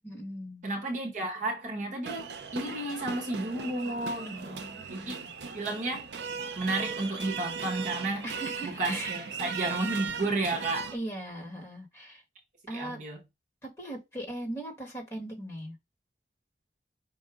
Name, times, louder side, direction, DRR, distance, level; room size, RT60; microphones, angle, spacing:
voice 1, 0.0-0.6 3.8-5.3 8.2-9.2 10.9-12.2 12.7-13.0 13.6-15.8, right 1 dB, 15° left, 2.0 m, -39 dB
voice 2, 0.6-4.6 4.9-5.3 5.5-6.1 6.6-8.2 8.6-10.9 12.7-13.2, right 2 dB, 45° right, 1.1 m, -32 dB
sound 1, 2.1-11.0, right 6 dB, 75° right, 0.6 m, -38 dB
5.4 x 2.6 x 3.7 m
head